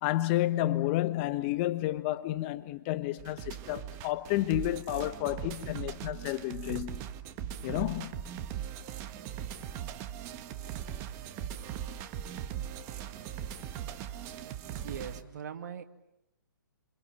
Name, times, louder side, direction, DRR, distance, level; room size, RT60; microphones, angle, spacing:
voice 1, 0.0-7.0 7.6-8.1, left 15 dB, 30° left, 1.2 m, -31 dB
sound 1, 3.2-15.2, right 10 dB, 25° right, 1.4 m, -40 dB
voice 2, 14.8-15.8, right 7 dB, 55° right, 2.3 m, -40 dB
28.0 x 28.0 x 7.6 m
hypercardioid pair, 135°, 11 cm